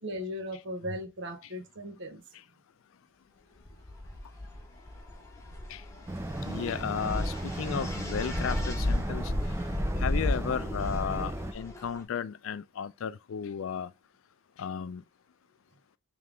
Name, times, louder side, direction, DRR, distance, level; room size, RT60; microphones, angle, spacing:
voice 1, 0.0-2.2, equal, 60° right, 0.9 m, -37 dB
sound 1, 3.6-12.0, left 1 dB, 15° left, 1.1 m, -33 dB
sound 2, 6.1-11.5, right 2 dB, 15° right, 0.3 m, -36 dB
voice 2, 6.4-9.3 10.0-13.9 14.6-15.0, left 7 dB, 70° left, 0.4 m, -34 dB
3.4 x 3.3 x 3.7 m
head